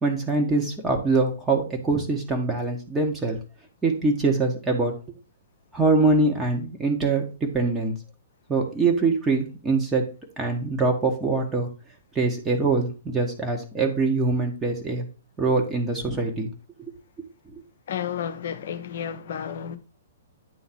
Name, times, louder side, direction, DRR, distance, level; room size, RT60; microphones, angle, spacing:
voice 1, 0.0-3.4 3.8-4.9 5.7-7.9 8.5-10.0 10.4-11.7 12.1-15.1 15.4-16.5 17.5-17.6, right 3 dB, 10° right, 1.4 m, -23 dB
voice 2, 17.9-19.8, left 8 dB, 50° left, 0.8 m, -31 dB
9.1 x 3.9 x 4.3 m
figure-of-eight pair, 115°, 0 cm